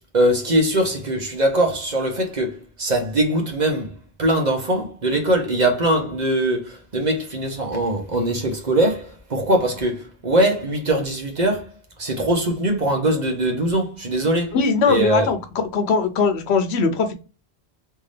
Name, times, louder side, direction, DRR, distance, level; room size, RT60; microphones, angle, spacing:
voice 1, 0.1-3.9 4.2-11.7 12.0-14.5 14.9-15.3, right 1 dB, 45° right, 1.0 m, -21 dB
voice 2, 14.5-15.4 15.7-17.1, left 5 dB, 80° left, 1.0 m, -20 dB
3.5 x 2.7 x 3.3 m
omnidirectional pair, 1.1 m